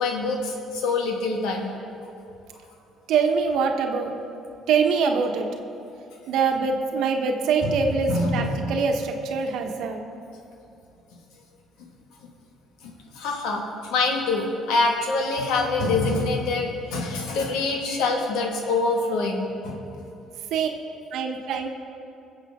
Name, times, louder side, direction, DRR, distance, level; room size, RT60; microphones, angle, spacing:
voice 1, 0.0-1.7 7.6-7.7 8.1-8.5 12.2-12.3 12.8-19.8, left 3 dB, 80° left, 1 dB, 1.9 m, -25 dB
voice 2, 3.1-4.1 4.7-5.5 6.3-10.0 20.5-20.7 21.1-21.7, right 5 dB, 75° right, 4 dB, 1.2 m, -24 dB
22.0 x 7.6 x 3.7 m, 2.7 s
supercardioid pair, 70°, 0 cm